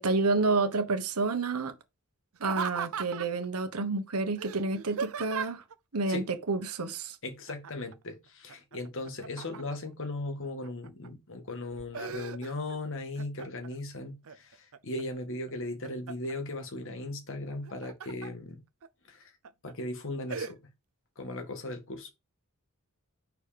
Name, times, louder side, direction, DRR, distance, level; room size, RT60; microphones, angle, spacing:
voice 1, 0.0-1.7 2.4-5.6 5.9-7.2, right 3 dB, 85° right, 1.2 m, -29 dB
Laughter, 2.3-3.5 4.4-5.7 7.5-7.9 8.3-9.9 10.4-11.1 11.5-12.8 13.2-13.7 14.2-15.0 15.5-16.3 17.5-18.3 18.8-18.9 19.4-19.7 20.3-20.5, right 6 dB, 65° right, 0.6 m, -38 dB
voice 2, 7.2-18.6 19.1-19.3 19.6-20.6 21.2-22.1, left 2 dB, 60° left, 2.0 m, -37 dB
6.5 x 4.8 x 5.1 m
head